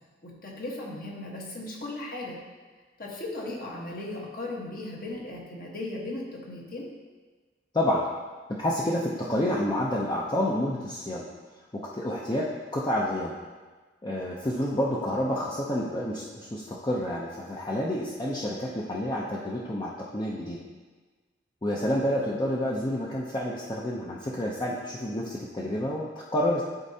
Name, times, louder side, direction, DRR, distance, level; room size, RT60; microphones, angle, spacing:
voice 1, 0.2-2.4 3.0-7.0, left 2 dB, 55° left, -2 dB, 1.3 m, -37 dB
voice 2, 7.7-8.1 8.6-11.3 11.7-13.4 14.0-20.6 21.6-26.6, left 1 dB, 25° left, -4 dB, 0.6 m, -29 dB
11.5 x 4.2 x 2.8 m, 1.4 s
head